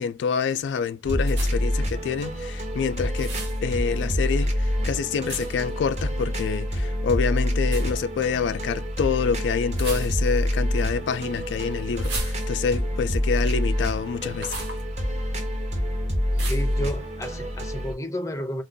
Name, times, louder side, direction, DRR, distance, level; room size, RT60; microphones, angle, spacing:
voice 1, 0.0-3.3 3.6-14.6, left 6 dB, 90° left, 0.3 m, -27 dB
sound 1, 1.0-17.9, equal, 40° right, 0.7 m, -27 dB
sound 2, 1.3-1.8 3.1-3.6 5.3-5.7 7.6-7.9 9.7-10.4 12.0-12.8 14.4-14.8 16.4-16.8, right 2 dB, 85° right, 1.1 m, -35 dB
voice 2, 16.5-18.6, equal, 20° left, 0.5 m, -31 dB
2.4 x 2.2 x 3.7 m
head